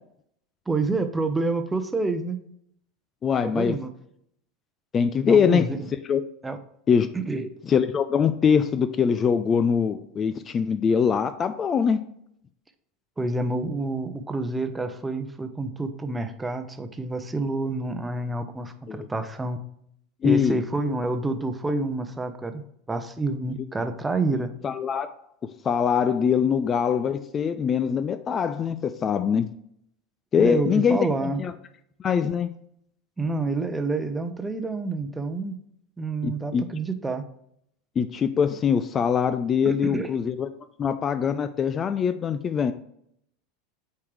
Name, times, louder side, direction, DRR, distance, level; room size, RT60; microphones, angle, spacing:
voice 1, 0.7-2.4 3.4-3.9 5.3-5.9 6.4-6.6 7.1-7.5 13.2-19.6 20.2-24.5 30.4-31.4 33.2-35.6 36.0-37.2 39.6-40.1, right 3 dB, 15° right, 9 dB, 0.8 m, -28 dB
voice 2, 3.2-3.8 4.9-5.6 6.1-6.2 6.9-7.1 7.7-12.0 18.9-19.1 20.2-20.6 24.6-25.1 25.6-29.5 30.3-31.5 32.0-32.5 36.2-36.6 38.0-40.5 40.8-42.7, left 7 dB, 30° left, 11 dB, 0.4 m, -23 dB
8.3 x 4.6 x 3.3 m, 0.72 s
hypercardioid pair, 80°, 0 cm